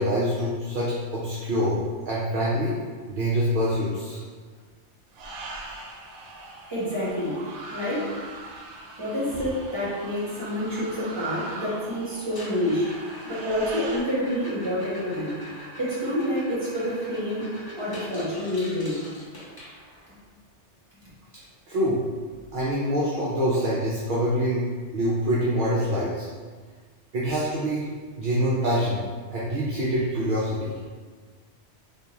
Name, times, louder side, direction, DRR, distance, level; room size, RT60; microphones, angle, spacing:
voice 1, 0.0-1.8 2.1-2.8 3.1-4.2 21.3-22.0 22.5-24.6 24.9-26.2 27.1-27.9 28.2-29.0 29.3-30.7, equal, 55° right, -7 dB, 0.7 m, -25 dB
sound 1, 5.1-14.0, right 2 dB, 80° right, 0.9 m, -41 dB
voice 2, 6.7-7.4 7.7-8.2 9.0-12.9 13.2-15.4 15.8-17.4 17.8-19.0, equal, 25° right, -8 dB, 1.0 m, -28 dB
sound 2, 12.2-20.2 22.4-22.5 22.8-23.1 23.5-23.6 24.2-24.3 26.2-26.3, equal, 25° left, 0.6 m, -43 dB
3.6 x 2.5 x 2.9 m, 1.5 s
omnidirectional pair, 1.2 m